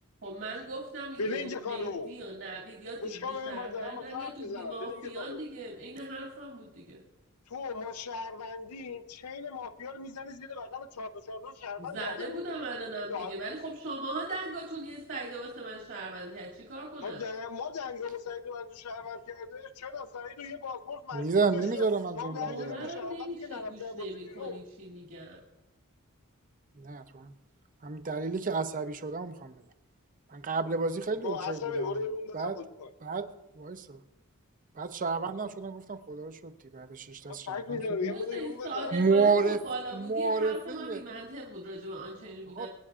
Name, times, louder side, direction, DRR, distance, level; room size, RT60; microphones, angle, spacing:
voice 1, 0.2-7.0 11.8-17.2 22.4-25.4 38.1-42.7, right 2 dB, 55° right, -5 dB, 2.6 m, -39 dB
voice 2, 1.2-2.1 3.0-5.4 7.5-12.4 13.1-13.3 17.0-21.2 21.5-21.8 22.2-24.6 31.2-32.9 37.3-39.0, left 4 dB, 85° left, 9 dB, 0.6 m, -37 dB
voice 3, 21.1-22.9 26.8-27.3 27.8-29.6 30.3-32.0 32.3-32.6 33.0-33.3 33.6-34.0 34.8-38.1 38.9-39.6 39.9-41.2 42.5-42.7, right 4 dB, 35° right, 11 dB, 0.6 m, -30 dB
24.0 x 9.8 x 2.5 m, 1.0 s
head